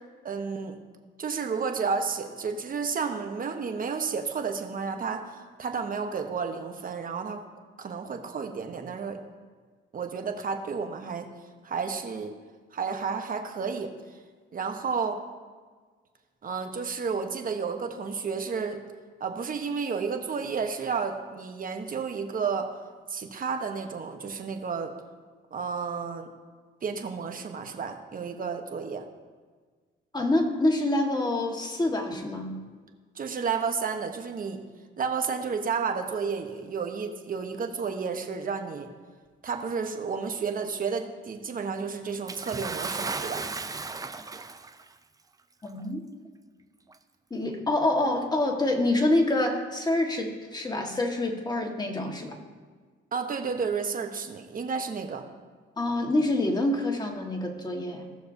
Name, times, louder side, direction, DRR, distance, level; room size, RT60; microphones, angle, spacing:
voice 1, 0.2-0.8 1.2-7.4 7.8-9.2 9.9-11.3 11.6-12.3 12.7-13.9 14.5-15.2 16.4-18.8 19.2-22.7 23.1-24.9 25.5-26.3 26.8-29.0 33.1-34.6 35.0-38.9 39.4-43.4 53.1-55.2, right 5 dB, 45° right, 5 dB, 1.1 m, -31 dB
voice 2, 30.1-32.6 45.6-46.0 47.3-52.4 55.8-58.1, left 1 dB, 20° left, 2 dB, 1.6 m, -26 dB
Bathtub (filling or washing) / Splash splatter, 42.3-44.9 45.8-45.9 46.9-47.0, right 3 dB, 20° right, 0.5 m, -35 dB
17.5 x 6.5 x 2.7 m, 1.5 s
cardioid pair, 90°, 20 cm